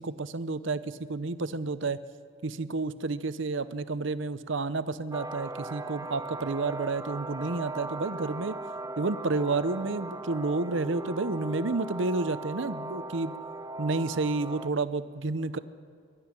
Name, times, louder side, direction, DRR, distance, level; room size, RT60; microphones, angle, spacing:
voice 1, 0.0-2.0 2.4-8.6 9.0-13.3 13.8-15.6, right 3 dB, 65° right, 13 dB, 0.8 m, -30 dB
sound 1, 5.1-14.7, right 2 dB, 20° right, 0.6 m, -38 dB
22.5 x 12.5 x 9.8 m, 2.3 s
head